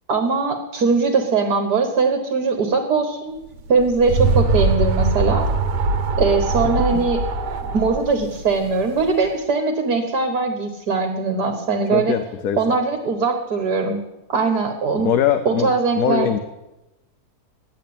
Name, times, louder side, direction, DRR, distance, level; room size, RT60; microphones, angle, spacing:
voice 1, 0.1-3.3 3.7-5.5 6.2-7.2 7.6-12.2 12.6-14.0 14.3-15.1 15.5-16.4, right 4 dB, 70° right, 6 dB, 2.0 m, -21 dB
sound 1, 3.6-9.2, right 3 dB, 90° right, 1.6 m, -22 dB
voice 2, 11.9-12.6 15.0-15.7 15.9-16.4, left 9 dB, 65° left, 8 dB, 1.2 m, -21 dB
13.5 x 11.0 x 8.7 m, 0.99 s
omnidirectional pair, 1.7 m